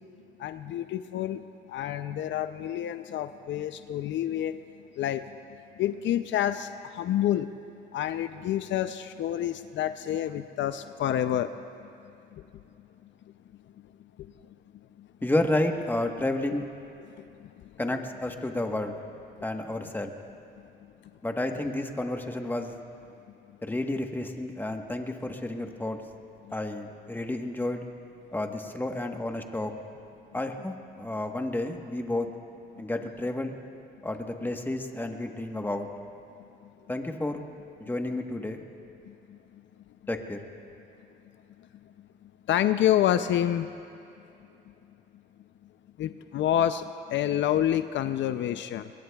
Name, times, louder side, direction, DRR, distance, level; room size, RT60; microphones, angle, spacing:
voice 1, 0.4-4.6 5.0-5.3 5.8-7.5 7.9-11.9 14.2-14.3 15.0-15.1 17.2-17.7 32.8-32.9 36.4-36.5 39.1-39.4 42.5-43.7 46.0-48.9, left 11 dB, 70° left, 11 dB, 0.5 m, -28 dB
voice 2, 15.2-16.6 17.8-19.0 19.4-20.1 21.2-22.7 23.6-26.0 26.5-27.8 28.3-29.7 30.3-32.3 32.8-33.5 34.0-35.9 36.9-37.4 37.8-38.6 40.1-40.4, left 1 dB, 10° left, 4 dB, 1.2 m, -31 dB
24.0 x 21.0 x 2.3 m, 2.7 s
cardioid pair, 90°, 20 cm